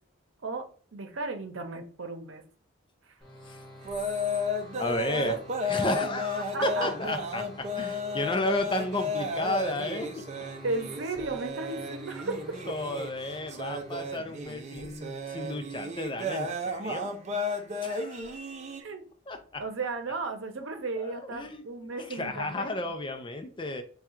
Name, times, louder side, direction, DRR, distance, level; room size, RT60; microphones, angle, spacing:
voice 1, 0.9-2.4 5.1-5.3 6.5-6.9 10.6-12.6 18.8-19.0 19.6-22.9, right 3 dB, 85° right, 6 dB, 0.7 m, -35 dB
sound 1, 3.2-14.5, left 1 dB, 5° left, 1.2 m, -49 dB
sound 2, 3.8-18.8, left 2 dB, 35° right, 0.5 m, -34 dB
voice 2, 4.8-10.3 12.7-17.1 17.5-18.4 19.3-19.6 21.0-21.6 22.0-23.8, left 1 dB, 25° left, 7 dB, 0.5 m, -33 dB
3.6 x 2.3 x 4.3 m, 0.40 s
head